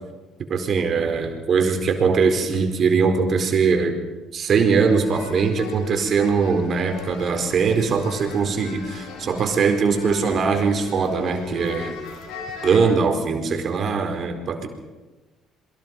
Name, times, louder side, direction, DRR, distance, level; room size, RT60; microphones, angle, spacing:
voice 1, 0.5-4.0 4.3-11.9 12.6-14.7, right 5 dB, 50° right, 5 dB, 4.5 m, -21 dB
sound 1, 4.7-12.9, left 5 dB, 70° left, 5.0 m, -38 dB
28.0 x 23.0 x 5.4 m, 1.2 s
hypercardioid pair, 55°, 0 cm